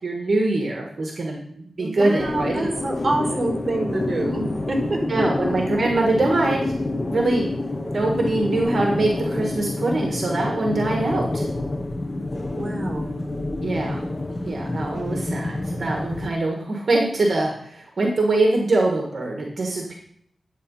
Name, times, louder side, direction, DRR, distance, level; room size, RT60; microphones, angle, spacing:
voice 1, 0.0-2.7 5.1-6.7 7.1-7.5 7.9-11.4 13.6-14.0 14.4-19.9, right 2 dB, 45° right, 0 dB, 1.8 m, -23 dB
voice 2, 1.8-5.2 12.5-13.2, right 2 dB, 30° right, -2 dB, 4.4 m, -27 dB
sound 1, 2.2-16.3, left 2 dB, 20° left, 0.8 m, -28 dB
11.5 x 8.4 x 5.6 m, 0.68 s
wide cardioid pair, 150°, 0 cm